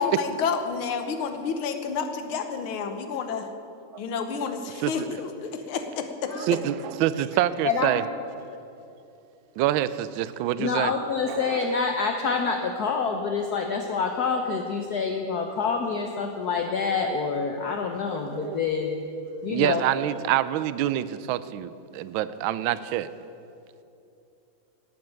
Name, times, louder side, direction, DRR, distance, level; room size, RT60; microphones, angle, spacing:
voice 1, 0.0-3.5 4.0-6.6, left 5 dB, 90° left, 7 dB, 1.9 m, -30 dB
voice 2, 6.4-8.0 9.6-10.9 11.3-11.8 18.1-18.6 19.5-23.1, right 12 dB, 80° right, 15 dB, 1.3 m, -26 dB
voice 3, 7.6-8.0 8.5-8.6 10.6-18.9 19.4-19.9, left 5 dB, 60° left, 4 dB, 1.2 m, -27 dB
11.5 x 8.7 x 8.9 m, 2.8 s
omnidirectional pair, 2.2 m